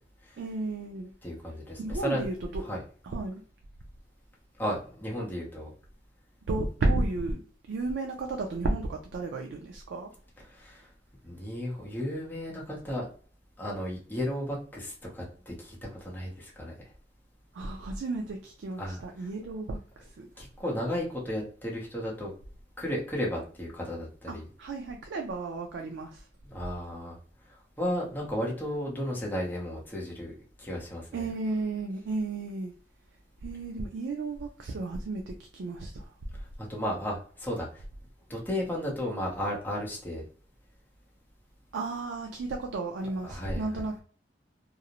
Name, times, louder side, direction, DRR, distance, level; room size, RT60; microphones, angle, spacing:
voice 1, 0.4-1.1 1.8-2.6 3.0-3.4 6.5-10.1 17.5-20.3 24.3-26.3 31.1-32.7 33.4-36.1 41.7-44.0, right 2 dB, 85° right, 0.4 m, -33 dB
voice 2, 1.2-2.3 2.7-2.8 4.6-5.7 10.5-10.9 11.2-13.1 13.6-16.7 18.8-19.0 20.4-22.3 22.8-24.5 26.5-27.2 27.5-30.3 30.6-31.1 36.7-37.8 38.3-40.3 43.3-43.6, equal, 10° left, 0.7 m, -34 dB
2.5 x 2.0 x 2.8 m
head